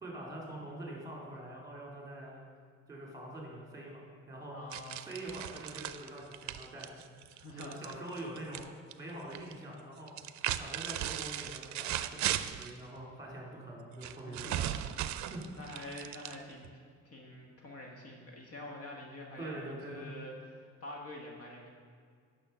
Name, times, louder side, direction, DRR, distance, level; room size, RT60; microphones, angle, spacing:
voice 1, 0.0-2.5 2.9-4.5 5.1-7.0 7.5-8.6 9.0-10.1 10.5-14.7 15.3-15.4 19.4-20.0, right 1 dB, 10° right, -2 dB, 2.7 m, -44 dB
voice 2, 4.5-5.2 7.4-7.8 14.2-14.6 15.1-15.3 15.5-16.7 17.0-21.7, left 1 dB, 50° left, 0 dB, 1.4 m, -46 dB
sound 1, 4.7-8.7 8.9-9.5 10.1-12.8 14.0-16.7, right 12 dB, 70° right, 0.5 m, -37 dB
8.9 x 6.4 x 5.6 m, 2.1 s
cardioid pair, 115°, 29 cm